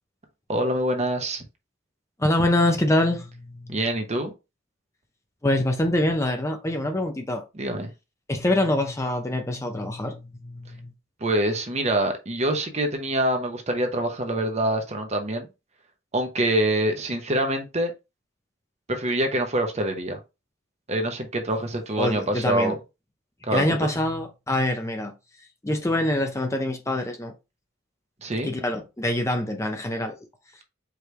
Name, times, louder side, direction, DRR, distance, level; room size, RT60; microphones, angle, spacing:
voice 1, 0.5-1.4 3.7-4.3 7.5-7.9 11.2-15.5 16.1-17.9 18.9-20.2 20.9-22.7 23.4-23.8 28.2-28.5, right 1 dB, 35° right, 0.9 m, -25 dB
voice 2, 2.2-3.8 5.4-7.4 8.3-10.9 22.0-22.7 23.5-25.1 25.6-27.3 28.4-30.1, left 1 dB, 15° left, 0.6 m, -25 dB
4.8 x 3.2 x 3.3 m
head